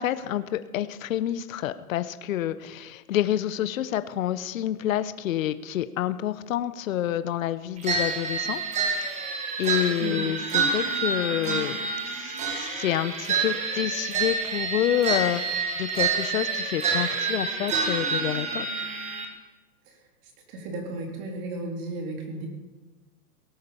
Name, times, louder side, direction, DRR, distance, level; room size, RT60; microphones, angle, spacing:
voice 1, 0.0-8.6 9.6-11.8 12.1-18.9, left 12 dB, 60° left, 12 dB, 1.0 m, -28 dB
sound 1, 7.8-19.2, right 4 dB, 15° right, 1.8 m, -28 dB
voice 2, 20.2-22.5, right 2 dB, 35° right, 2 dB, 3.5 m, -34 dB
18.0 x 9.6 x 7.1 m, 1.2 s
hypercardioid pair, 155°, 45 cm